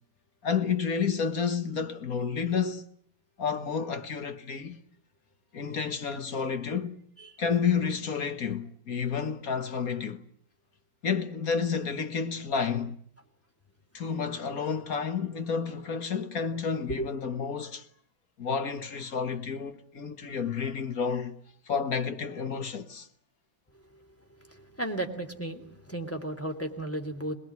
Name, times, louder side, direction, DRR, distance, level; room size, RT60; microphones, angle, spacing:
voice 1, 0.4-2.8 3.4-4.8 5.5-7.0 7.4-10.2 11.0-13.0 13.9-17.9 18.4-21.3 21.7-23.1, left 6 dB, 50° left, 1.8 m, -30 dB
voice 2, 24.5-27.3, right 1 dB, 5° left, 2.9 m, -34 dB
27.0 x 20.0 x 9.6 m
omnidirectional pair, 2.2 m